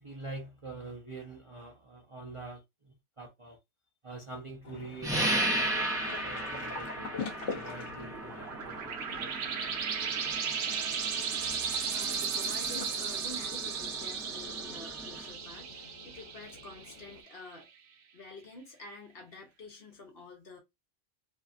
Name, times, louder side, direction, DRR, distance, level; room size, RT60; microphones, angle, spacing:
voice 1, 0.0-3.6 4.0-7.2 7.5-9.9, right 3 dB, 35° right, 0.5 m, -46 dB
sound 1, 4.6-17.2, left 4 dB, 80° left, 1.1 m, -46 dB
sound 2, 5.0-15.3, right 1 dB, 5° right, 0.8 m, -36 dB
sound 3, 8.1-17.3, right 6 dB, 70° right, 0.8 m, -35 dB
voice 2, 11.9-17.7 18.1-20.6, left 2 dB, 55° left, 1.0 m, -48 dB
2.7 x 2.4 x 2.4 m
omnidirectional pair, 1.2 m